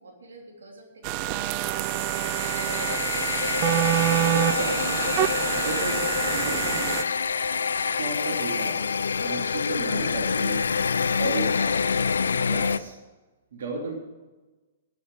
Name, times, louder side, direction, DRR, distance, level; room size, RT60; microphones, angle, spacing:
voice 1, 0.0-2.4, right 2 dB, 90° right, 0 dB, 3.2 m, -49 dB
sound 1, 1.0-7.0, right 17 dB, 40° right, 0.3 m, -26 dB
sound 2, 1.5-12.8, left 5 dB, 90° left, 0.5 m, -27 dB
voice 2, 4.3-5.0 5.5-6.0 6.3-7.2 7.8-10.7 11.2-11.8 12.5-13.0 13.5-13.9, right 3 dB, 70° right, 0 dB, 2.9 m, -34 dB
12.0 x 7.1 x 9.1 m, 1.2 s
hypercardioid pair, 130°, 0 cm